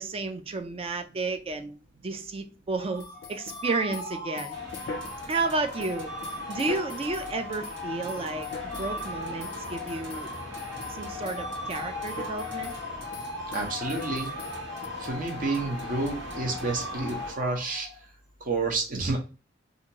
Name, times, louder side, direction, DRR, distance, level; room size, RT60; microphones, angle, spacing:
voice 1, 0.0-1.8 2.0-4.6 5.3-6.1 6.5-10.3 10.9-12.7, right 3 dB, 30° right, 0.3 m, -32 dB
sound 1, 2.8-18.0, left 2 dB, 20° left, 0.7 m, -38 dB
sound 2, 3.0-5.5 5.8-7.3 7.6-7.8 8.1-9.1 9.4-11.0 11.2-11.4 11.7-12.8 13.1-14.9, left 5 dB, 55° left, 0.4 m, -42 dB
sound 3, 4.5-17.3, equal, 85° right, 1.4 m, -42 dB
voice 2, 13.5-14.3 15.0-17.9 18.4-19.2, right 3 dB, 50° right, 0.8 m, -30 dB
2.8 x 2.5 x 2.7 m
head